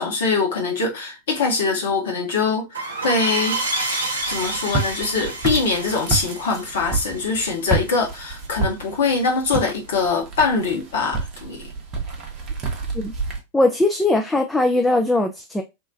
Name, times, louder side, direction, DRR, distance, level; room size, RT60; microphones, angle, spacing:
voice 1, 0.0-3.6 4.3-11.7, left 4 dB, 60° left, 1.1 m, -23 dB
sound 1, 2.7-8.1, right 2 dB, 75° right, 0.7 m, -29 dB
Walk footsteps, 4.2-13.4, right 3 dB, 35° right, 0.8 m, -29 dB
voice 2, 13.5-15.6, left 2 dB, 5° left, 0.3 m, -20 dB
3.1 x 2.2 x 2.3 m
figure-of-eight pair, 90°, 0 cm